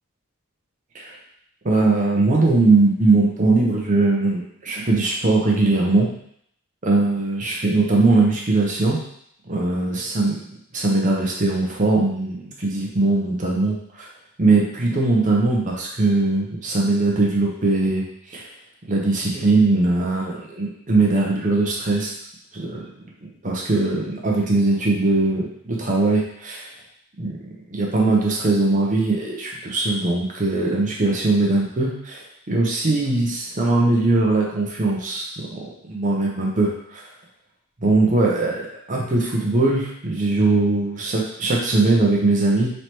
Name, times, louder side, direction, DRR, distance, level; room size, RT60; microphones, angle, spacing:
voice 1, 1.6-6.1 6.8-9.0 9.5-10.4 10.7-14.1 14.4-18.5 18.9-22.2 22.5-22.9 23.2-26.7 27.2-27.4 27.7-37.1 37.8-42.7, right 2 dB, 35° right, -2 dB, 0.7 m, -20 dB
3.2 x 2.9 x 4.4 m, 0.69 s
head